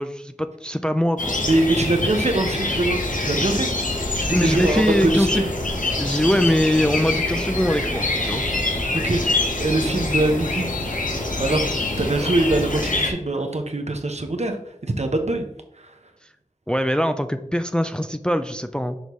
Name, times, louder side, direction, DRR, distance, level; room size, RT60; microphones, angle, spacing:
voice 1, 0.0-1.4 4.3-5.4 6.0-8.4 12.2-12.3 16.7-19.0, equal, 5° left, 9 dB, 0.4 m, -22 dB
sound 1, 1.2-13.1, left 2 dB, 75° left, 1.1 m, -25 dB
voice 2, 1.5-3.7 4.2-5.5 9.0-9.2 9.6-10.7 11.4-14.6 14.8-15.4 15.8-15.9, right 2 dB, 55° right, 5 dB, 0.9 m, -23 dB
6.4 x 5.3 x 3.1 m, 0.82 s
wide cardioid pair, 45°, 14 cm